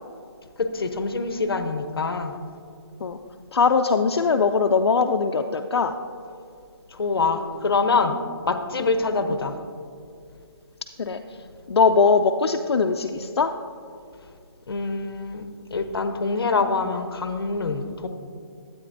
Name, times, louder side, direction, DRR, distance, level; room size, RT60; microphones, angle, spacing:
voice 1, 0.6-2.3 7.0-8.2 8.4-9.5 14.7-15.4 15.7-18.1, left 4 dB, 65° left, 7 dB, 0.8 m, -25 dB
voice 2, 3.5-5.9 11.0-11.2 11.7-13.5, left 5 dB, 90° left, 4 dB, 0.5 m, -20 dB
12.5 x 8.6 x 2.6 m, 2.4 s
hypercardioid pair, 180°, 13 cm